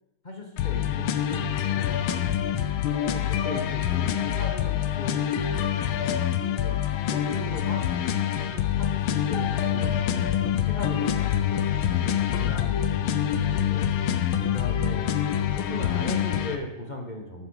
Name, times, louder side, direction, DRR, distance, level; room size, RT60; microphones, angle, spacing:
voice 1, 0.2-2.7 3.1-6.8 7.1-7.9 8.3-10.3 10.6-13.9 14.5-15.1 15.5-17.5, left 1 dB, 30° left, 1 dB, 1.0 m, -38 dB
sound 1, 0.6-16.6, left 10 dB, 75° left, 1.5 m, -26 dB
13.5 x 6.5 x 4.8 m, 0.99 s
omnidirectional pair, 2.3 m